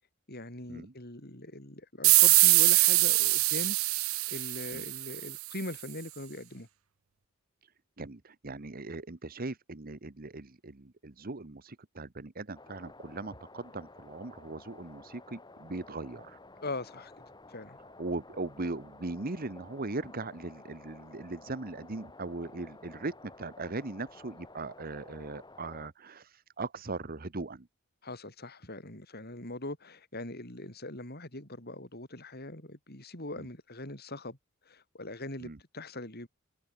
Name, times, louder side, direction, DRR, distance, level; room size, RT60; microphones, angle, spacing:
voice 1, 0.3-3.8 4.3-6.7 16.6-17.1 17.5-17.8 28.0-34.4 34.7-36.3, left 2 dB, 50° left, 7.6 m, -41 dB
sound 1, 2.0-5.4, right 20 dB, 90° right, 0.8 m, -23 dB
voice 2, 8.0-16.4 18.0-27.7 33.4-33.5 35.4-35.6, right 3 dB, 45° right, 1.2 m, -39 dB
sound 2, 12.5-25.9, left 2 dB, 20° left, 5.0 m, -53 dB
head